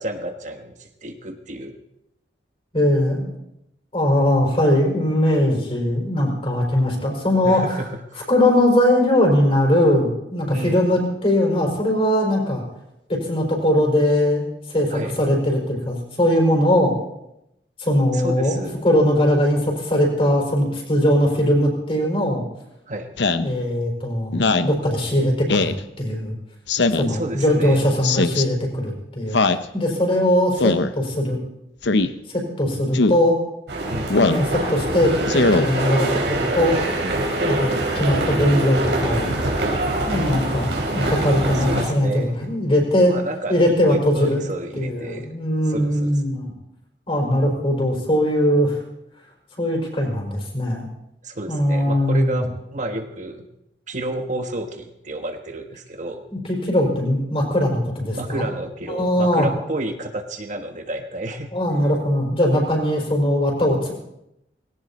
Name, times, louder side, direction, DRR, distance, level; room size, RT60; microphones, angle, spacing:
voice 1, 0.0-1.8 7.4-8.3 10.5-10.9 14.9-15.1 18.1-18.8 22.9-23.2 27.1-27.8 33.9-34.2 41.5-42.3 43.0-43.6 43.8-45.3 45.7-46.1 51.2-53.4 53.9-56.2 58.1-61.5, right 1 dB, 45° right, 5 dB, 1.3 m, -30 dB
voice 2, 2.7-3.3 3.9-7.8 8.3-12.6 13.1-14.4 14.7-16.9 17.8-22.4 23.3-25.7 26.0-26.4 26.9-29.4 29.7-31.4 32.3-33.4 34.2-36.8 37.4-37.7 37.9-39.4 40.0-43.1 43.5-46.5 47.1-48.8 49.6-50.9 51.5-52.4 56.3-58.5 58.9-59.5 61.5-63.9, left 1 dB, 35° left, 0 dB, 4.9 m, -20 dB
Speech synthesizer, 23.2-23.5 24.3-24.7 25.5-25.8 26.7-27.1 28.0-28.4 29.3-29.6 30.6-30.9 31.8-32.1 32.9-33.2 34.1-34.4 35.3-35.6, left 3 dB, 85° left, 0.8 m, -19 dB
sound 1, 33.7-41.8, right 1 dB, 85° right, 4.5 m, -24 dB
19.0 x 17.0 x 4.3 m, 0.84 s
head